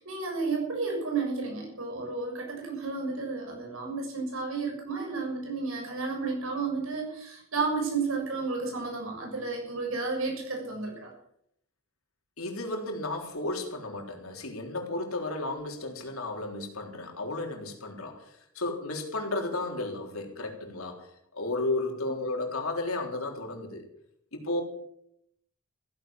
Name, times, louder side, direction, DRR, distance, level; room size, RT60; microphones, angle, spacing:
voice 1, 0.0-11.1, right 4 dB, 75° right, 1 dB, 6.8 m, -32 dB
voice 2, 12.4-23.8 24.3-24.6, left 2 dB, 85° left, 2 dB, 3.7 m, -33 dB
15.5 x 10.5 x 7.5 m, 0.72 s
head